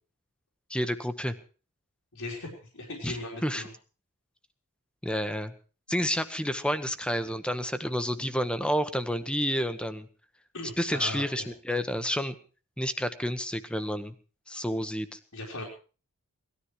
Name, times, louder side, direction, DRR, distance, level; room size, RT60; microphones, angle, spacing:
voice 1, 0.7-1.3 3.0-3.2 3.4-3.6 5.0-5.5 5.9-10.1 10.8-12.3 12.8-14.1 14.5-15.2, equal, 5° left, 10 dB, 1.0 m, -30 dB
voice 2, 2.1-3.7 10.5-11.5 15.3-15.6, left 2 dB, 80° left, -4 dB, 4.2 m, -38 dB
19.0 x 13.0 x 4.7 m, 0.36 s
head